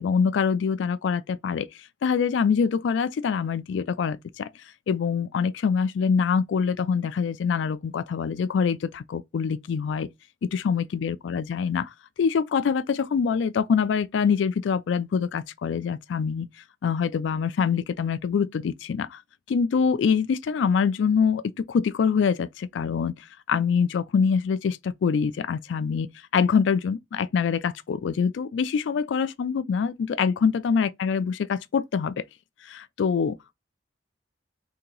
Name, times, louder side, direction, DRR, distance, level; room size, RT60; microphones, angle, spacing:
voice 1, 0.0-1.7 2.0-4.5 4.9-10.1 10.4-16.5 16.8-19.2 19.5-26.1 26.3-32.1 32.6-33.5, left 6 dB, 80° left, 0.3 m, -25 dB
2.8 x 2.7 x 3.8 m
head